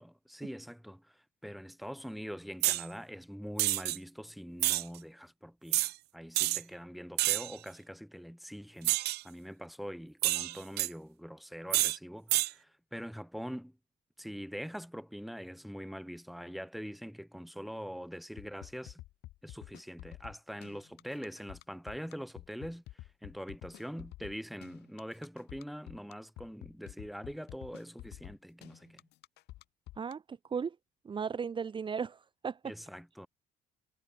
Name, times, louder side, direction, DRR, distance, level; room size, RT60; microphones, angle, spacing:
voice 1, 0.0-8.9 9.2-13.7 14.2-19.0 19.4-29.0 32.6-33.3, equal, ahead, 3.1 m, -44 dB
sound 1, 2.6-2.8 3.6-4.0 4.6-4.8 5.7-5.9 6.3-6.6 7.2-7.5 8.8-9.2 10.2-10.9 11.7-12.0 12.3-12.5, right 17 dB, 75° right, 0.6 m, -28 dB
sound 2, 18.4-30.1, left 16 dB, 80° left, 3.7 m, -49 dB
voice 2, 30.0-30.7 31.0-32.6, right 6 dB, 30° right, 1.0 m, -36 dB
cardioid pair, 110°, 17 cm